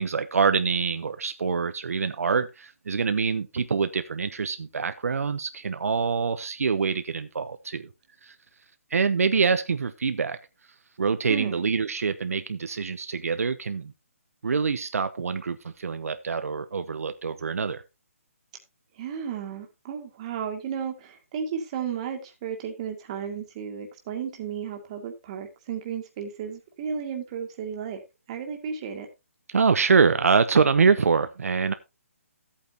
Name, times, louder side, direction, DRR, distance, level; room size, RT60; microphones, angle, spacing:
voice 1, 0.0-7.9 8.2-8.3 8.9-10.4 11.0-13.9 14.4-17.8 29.5-31.7, right 5 dB, 75° right, 0.9 m, -25 dB
voice 2, 11.3-11.8 18.9-28.0 28.3-29.1, right 7 dB, 25° right, 1.9 m, -34 dB
14.0 x 8.6 x 2.9 m
hypercardioid pair, 170°, 8 cm